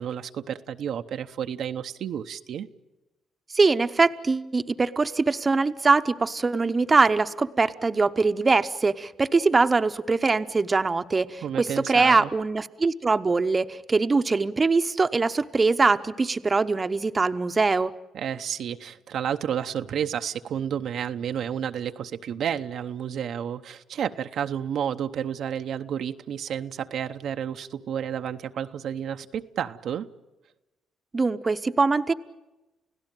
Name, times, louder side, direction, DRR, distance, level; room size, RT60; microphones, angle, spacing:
voice 1, 0.0-2.7 11.4-12.3 18.1-30.1, right 9 dB, 70° right, 7 dB, 0.8 m, -31 dB
voice 2, 3.5-17.9 31.1-32.1, right 3 dB, 30° right, 9 dB, 0.8 m, -22 dB
30.0 x 16.5 x 9.0 m, 1.0 s
cardioid pair, 90°, 0 cm